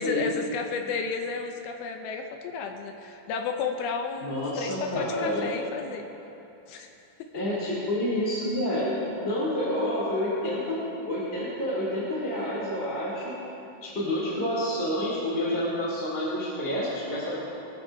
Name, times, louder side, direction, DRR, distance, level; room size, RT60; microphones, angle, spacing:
voice 1, 0.0-6.1 6.7-6.9 7.2-7.3, left 5 dB, 75° left, 4 dB, 2.4 m, -32 dB
voice 2, 4.2-5.5 7.3-8.9 9.2-10.8 11.1-13.3 13.8-17.4, left 1 dB, 15° left, -8 dB, 2.5 m, -28 dB
23.0 x 13.0 x 2.8 m, 2.9 s
omnidirectional pair, 5.0 m